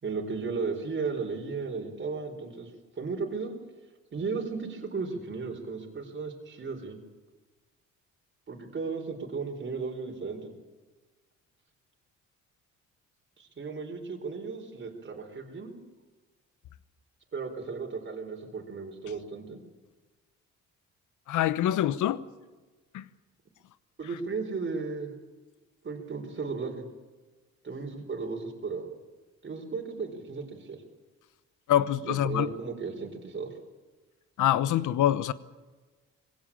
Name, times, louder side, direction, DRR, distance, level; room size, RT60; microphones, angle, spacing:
voice 1, 0.0-2.7 3.0-3.5 4.1-7.0 8.5-10.5 13.4-15.7 17.3-19.6 24.0-25.1 25.8-26.9 27.6-28.9 29.4-30.8 32.0-33.5, right 4 dB, 40° right, 4.2 m, -35 dB
voice 2, 21.3-22.2 22.9-23.0 31.7-32.5 34.4-35.3, left 12 dB, 80° left, 1.0 m, -25 dB
21.0 x 17.0 x 8.6 m
cardioid pair, 90°, 30 cm